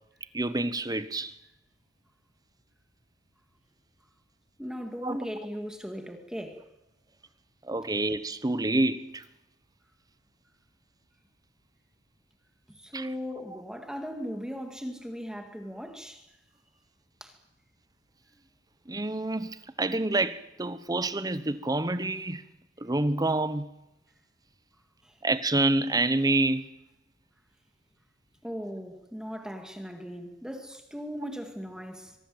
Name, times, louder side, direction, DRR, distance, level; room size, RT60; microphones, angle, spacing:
voice 1, 0.3-1.3 5.0-5.2 7.7-9.2 12.9-13.1 18.9-22.4 22.8-23.7 25.2-26.8, right 2 dB, 20° right, 1.0 m, -27 dB
voice 2, 4.6-6.6 12.7-16.2 17.2-17.3 25.0-25.1 28.4-32.2, equal, 5° right, 2.5 m, -38 dB
24.0 x 22.5 x 8.0 m
head